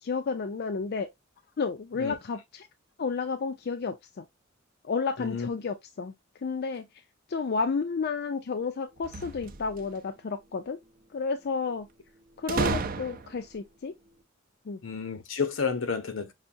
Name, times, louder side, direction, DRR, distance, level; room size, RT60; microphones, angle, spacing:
voice 1, 0.0-1.1 1.6-2.7 3.0-4.3 4.8-6.1 6.4-6.9 7.3-10.8 11.1-11.9 12.4-13.9 14.7-14.8, left 4 dB, 55° left, 0.4 m, -31 dB
voice 2, 5.2-5.5 14.8-16.3, left 5 dB, 80° left, 0.8 m, -31 dB
sound 1, 9.0-10.0 12.5-13.5, right 4 dB, 45° right, 0.5 m, -32 dB
5.6 x 2.6 x 2.6 m
head